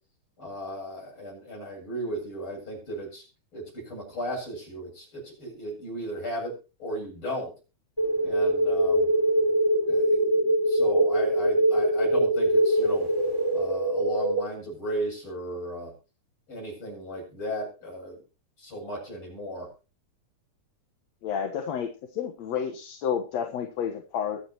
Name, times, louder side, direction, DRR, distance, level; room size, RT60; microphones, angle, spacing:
voice 1, 0.4-3.2 3.5-7.5 8.2-9.1 9.9-13.1 13.5-15.9 16.5-18.2 18.6-19.7, equal, 40° left, -1 dB, 8.8 m, -35 dB
sound 1, 8.0-14.4, right 1 dB, 10° left, 4.9 m, -23 dB
voice 2, 21.2-24.4, left 8 dB, 65° left, 5 dB, 2.4 m, -30 dB
22.5 x 8.8 x 3.1 m, 0.32 s
omnidirectional pair, 3.5 m